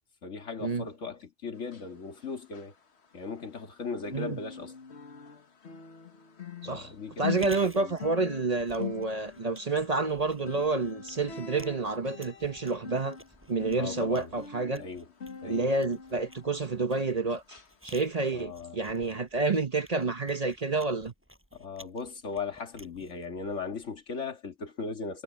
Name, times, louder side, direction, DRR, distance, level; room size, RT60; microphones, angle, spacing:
voice 1, 0.2-2.7 3.1-4.8 6.6-7.9 13.8-14.3 14.8-15.1 15.4-15.7 18.3-18.8 21.5-25.2, left 4 dB, 80° left, 2.2 m, -38 dB
sound 1, 1.6-3.7 4.0-17.1 17.5-17.7 18.2-18.3, left 7 dB, 60° left, 1.7 m, -43 dB
Chewing mastication, 7.2-24.0, equal, 10° right, 6.5 m, -54 dB
voice 2, 7.2-13.2 13.5-14.8 15.4-21.1, right 3 dB, 35° right, 0.9 m, -29 dB
omnidirectional pair, 1.2 m